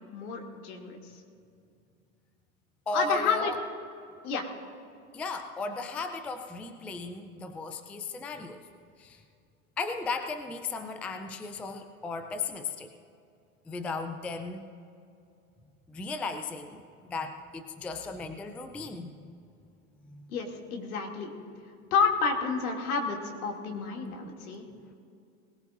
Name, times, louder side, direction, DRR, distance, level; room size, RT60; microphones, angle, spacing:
voice 1, 0.1-1.1 2.9-3.5 4.2-4.5 20.3-21.3 21.9-24.7, left 5 dB, 75° left, 1 dB, 2.5 m, -30 dB
voice 2, 2.9-3.6 5.1-8.7 9.0-9.2 9.8-12.9 13.7-14.7 15.9-19.3 20.1-20.3, left 3 dB, 5° left, 8 dB, 0.3 m, -36 dB
20.0 x 18.5 x 2.5 m, 2.5 s
hypercardioid pair, 105°, 44 cm